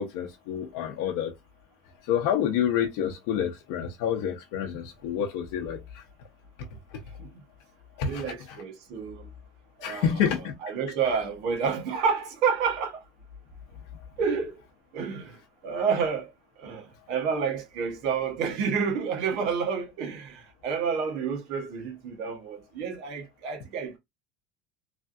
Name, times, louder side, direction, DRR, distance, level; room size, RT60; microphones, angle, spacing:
voice 1, 0.0-1.3 2.1-6.0 6.9-7.0 8.0-8.6 9.8-10.6, left 9 dB, 70° left, 0.6 m, -28 dB
voice 2, 8.0-9.3 9.8-10.3 10.6-13.0 14.2-14.5 14.9-15.4 15.6-16.3 16.6-24.0, right 6 dB, 60° right, 1.0 m, -29 dB
3.2 x 2.4 x 2.5 m
cardioid pair, 160°, 0 cm